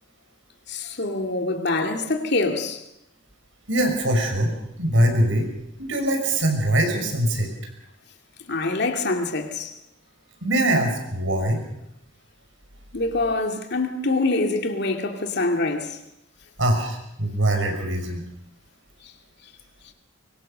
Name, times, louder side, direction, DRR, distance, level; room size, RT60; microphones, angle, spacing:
voice 1, 0.7-2.8 8.5-9.7 12.9-16.0, left 2 dB, 60° left, 2.3 m, -25 dB
voice 2, 3.7-5.5 5.8-7.5 10.4-11.6 16.6-18.2, right 1 dB, 90° right, 5.8 m, -22 dB
23.5 x 23.5 x 6.7 m
head